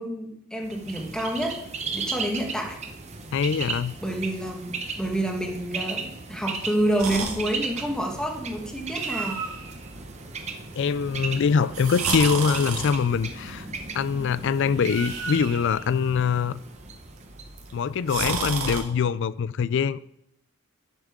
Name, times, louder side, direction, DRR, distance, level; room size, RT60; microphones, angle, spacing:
voice 1, 0.0-1.6 1.9-2.8 4.0-9.4, right 1 dB, 5° left, 1.4 m, -28 dB
Bird, 0.6-18.4, right 4 dB, 30° right, 0.9 m, -36 dB
voice 2, 3.3-3.9 10.8-13.7 13.9-16.6 17.7-20.1, left 6 dB, 55° left, 0.4 m, -24 dB
sound 1, 7.0-18.8, right 4 dB, 70° right, 1.8 m, -34 dB
10.5 x 8.1 x 3.7 m
head